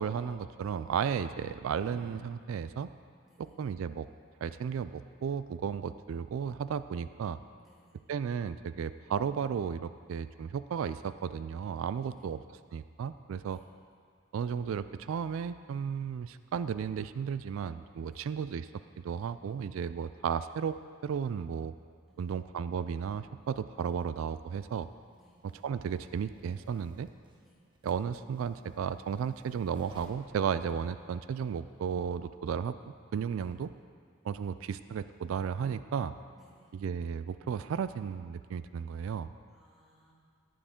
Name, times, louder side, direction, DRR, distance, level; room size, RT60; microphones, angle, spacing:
voice 1, 0.0-2.9 3.4-4.1 4.4-7.4 8.1-12.4 12.7-13.6 14.3-18.7 19.0-20.8 21.0-21.7 22.2-24.9 25.6-27.1 27.8-33.7 34.2-36.1 36.7-39.3, right 7 dB, 85° right, 13 dB, 0.3 m, -34 dB
sound 1, 1.3-2.5, left 2 dB, 85° left, 0.9 m, -51 dB
voice 2, 7.6-8.0 12.0-12.3 13.4-13.7 18.1-18.3 22.1-22.5 25.2-25.4 27.4-27.6 33.4-33.5 36.4-36.7 39.5-40.1, equal, ahead, -7 dB, 2.2 m, -64 dB
sound 2, 23.4-23.5 24.4-30.8, right 1 dB, 25° right, 0.9 m, -58 dB
14.0 x 9.4 x 3.7 m, 2.1 s
head